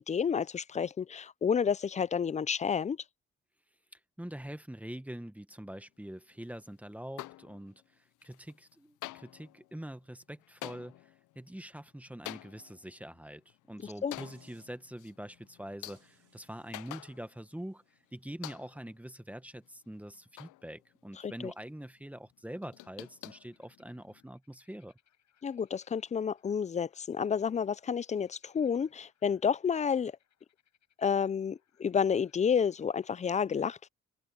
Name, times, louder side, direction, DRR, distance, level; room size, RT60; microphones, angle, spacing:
voice 1, 0.0-3.0 13.8-14.1 21.2-21.5 25.4-30.1 31.0-33.9, left 7 dB, 25° left, 0.4 m, -30 dB
voice 2, 3.9-17.8 18.1-25.0, right 1 dB, 5° right, 1.2 m, -44 dB
sound 1, 7.2-7.9 8.2-8.7 9.0-17.6 17.9-18.0 18.4-19.0 19.5-21.2 21.5-21.9 22.3-24.2, left 18 dB, 85° left, 0.5 m, -49 dB
sound 2, 14.2-14.7 15.9-21.0 21.5-21.6, right 13 dB, 80° right, 3.8 m, -72 dB
sound 3, 23.3-33.4, left 10 dB, 65° left, 7.1 m, -74 dB
cardioid pair, 90°, 30 cm